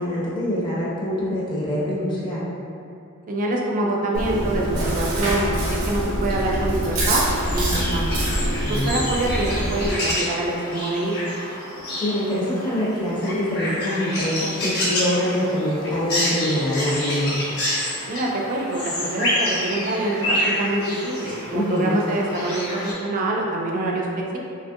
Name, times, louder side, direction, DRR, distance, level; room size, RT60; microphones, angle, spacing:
voice 1, 0.0-2.4 8.5-9.0 12.0-17.4 21.5-22.0, left 1 dB, 20° left, -8 dB, 0.5 m, -24 dB
voice 2, 3.3-8.1 8.7-11.2 18.1-24.4, right 2 dB, 40° right, -1 dB, 0.3 m, -25 dB
Chewing mastication, 4.1-9.9, right 1 dB, 75° right, 0.7 m, -25 dB
sound 1, 7.2-22.9, left 1 dB, 50° left, 0.8 m, -28 dB
2.8 x 2.4 x 2.6 m, 2.6 s
head